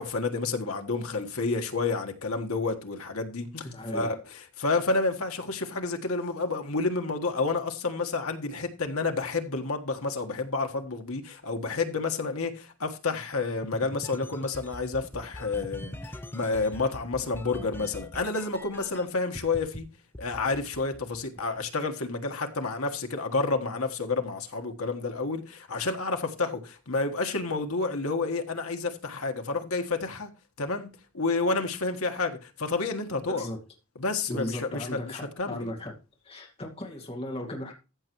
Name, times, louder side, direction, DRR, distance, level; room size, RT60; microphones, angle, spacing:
voice 1, 0.0-19.9 20.2-30.3 30.6-33.5 33.9-35.0 35.4-35.7, left 3 dB, 75° left, 1.6 m, -30 dB
voice 2, 3.6-4.1 33.3-33.6 34.3-35.9 36.2-37.7, left 1 dB, 25° left, 2.4 m, -36 dB
sound 1, 13.6-19.0 19.3-19.8 20.1-21.6, left 1 dB, 10° left, 0.7 m, -42 dB
14.5 x 6.8 x 3.1 m
head